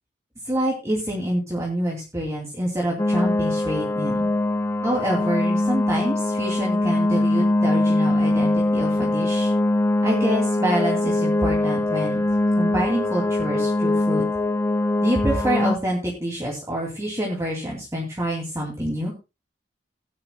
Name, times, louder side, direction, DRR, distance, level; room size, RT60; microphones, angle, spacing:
voice 1, 0.5-4.3 4.8-9.5 10.0-12.2 12.6-14.2 15.0-19.1, equal, 15° right, -3 dB, 2.5 m, -26 dB
sound 1, 3.0-15.8, left 2 dB, 15° left, 0.5 m, -22 dB
18.0 x 10.0 x 2.2 m, 0.26 s
head